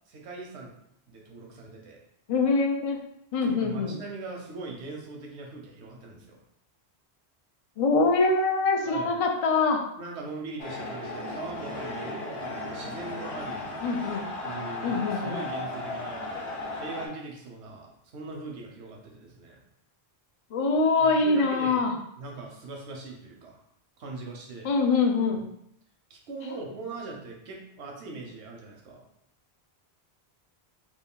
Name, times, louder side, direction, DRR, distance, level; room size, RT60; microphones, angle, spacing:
voice 1, 0.1-0.7 1.1-2.0 3.4-6.4 8.8-9.1 10.0-13.7 14.4-16.3 16.8-19.6 21.0-21.8 22.2-23.6 24.0-24.7 26.1-29.0, right 3 dB, 85° right, 0 dB, 1.0 m, -40 dB
voice 2, 2.3-3.0 3.3-4.0 7.8-9.8 13.8-14.3 14.8-15.4 20.5-21.9 24.6-25.4, left 3 dB, 50° left, 3 dB, 0.4 m, -24 dB
sound 1, 10.6-17.1, left 2 dB, 65° left, 1.0 m, -35 dB
3.1 x 2.5 x 3.7 m, 0.75 s
omnidirectional pair, 1.1 m